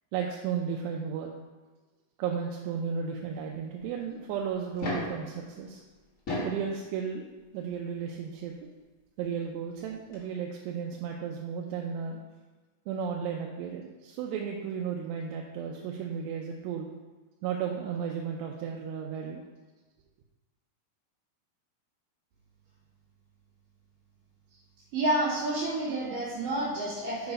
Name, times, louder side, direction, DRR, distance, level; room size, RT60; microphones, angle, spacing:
voice 1, 0.1-1.3 2.2-5.8 6.4-7.2 7.5-8.5 9.2-12.2 12.9-16.9 17.4-19.4, right 7 dB, 90° right, 1 dB, 2.7 m, -34 dB
sound 1, 4.6-5.2 6.1-6.6 7.9-8.0 9.8-9.9 10.1-10.2, left 1 dB, 75° left, 0.7 m, -33 dB
voice 2, 24.9-27.3, right 1 dB, 60° right, -13 dB, 3.4 m, -29 dB
6.9 x 4.8 x 5.3 m, 1.3 s
omnidirectional pair, 4.7 m